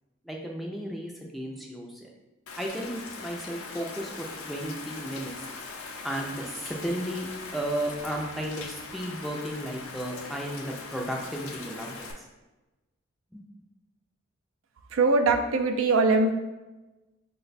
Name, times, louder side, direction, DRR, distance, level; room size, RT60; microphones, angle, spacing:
voice 1, 0.2-2.1 2.6-5.3 6.0-7.3 7.5-12.3 13.3-13.4, right 1 dB, ahead, -1 dB, 0.4 m, -34 dB
Rain, 2.5-12.1, left 4 dB, 85° left, 0.6 m, -41 dB
voice 2, 14.9-16.3, right 3 dB, 75° right, 5 dB, 0.4 m, -22 dB
5.0 x 2.2 x 4.0 m, 1.1 s
head